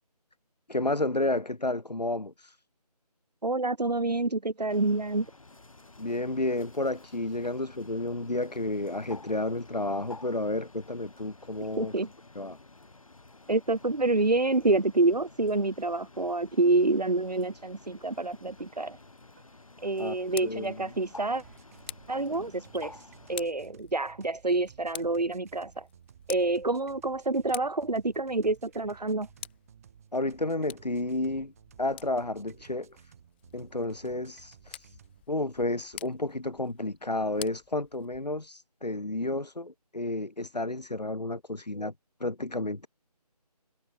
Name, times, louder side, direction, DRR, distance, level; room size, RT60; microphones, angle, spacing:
voice 1, 0.7-2.6 6.0-11.9 12.3-12.6 20.0-20.1 20.4-20.9 30.1-31.5 31.8-33.1 33.5-35.0 35.3-41.9 42.2-42.9, left 2 dB, 85° left, 1.5 m, -31 dB
voice 2, 3.4-5.3 11.8-12.1 13.5-19.0 19.8-21.4 22.1-22.9 23.3-25.9 26.3-29.3, right 2 dB, 80° right, 1.1 m, -27 dB
Bird, 4.7-23.4, left 3 dB, 55° left, 6.8 m, -52 dB
sound 1, 18.6-35.2, right 8 dB, 20° right, 5.2 m, -57 dB
Tick, 20.0-38.5, left 13 dB, 15° left, 4.4 m, -49 dB
figure-of-eight pair, 160°, 20 cm